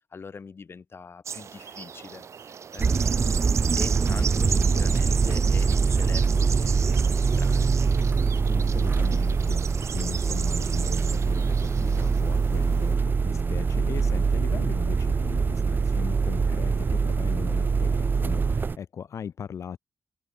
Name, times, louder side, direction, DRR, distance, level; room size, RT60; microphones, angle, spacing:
voice 1, 0.1-3.3 3.8-7.7, left 5 dB, 55° left, 2.0 m, -43 dB
sound 1, 1.2-12.9, right 7 dB, 75° right, 2.7 m, -36 dB
sound 2, 2.8-18.8, right 5 dB, 40° right, 0.3 m, -24 dB
voice 2, 4.4-5.0 8.5-19.8, left 7 dB, 80° left, 4.0 m, -39 dB
cardioid pair, 70°, 5 cm